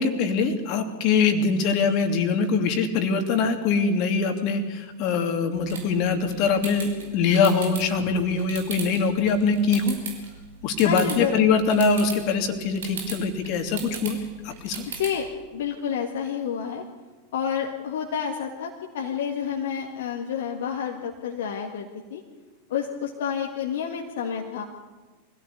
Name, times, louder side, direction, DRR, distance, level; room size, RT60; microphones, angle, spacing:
voice 1, 0.0-10.0 10.6-14.2 14.4-14.8, left 5 dB, 40° left, 6 dB, 2.8 m, -23 dB
sound 1, 5.5-15.3, right 5 dB, 60° right, 5.0 m, -39 dB
voice 2, 10.8-11.4 14.9-15.3 15.5-16.8 17.3-22.2 22.7-24.6, left 8 dB, 55° left, 1 dB, 2.1 m, -29 dB
24.0 x 16.5 x 8.4 m, 1.3 s
figure-of-eight pair, 90°, 0 cm